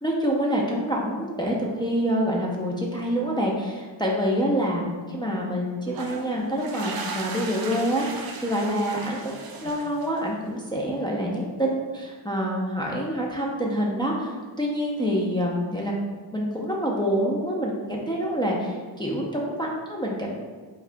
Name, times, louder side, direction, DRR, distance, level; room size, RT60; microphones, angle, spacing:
voice 1, 0.0-15.9 16.3-20.4, equal, 10° left, -3 dB, 0.6 m, -26 dB
sound 1, 5.9-10.4, right 3 dB, 50° right, 0.5 m, -37 dB
4.6 x 2.7 x 2.2 m, 1.4 s
cardioid pair, 50°, 46 cm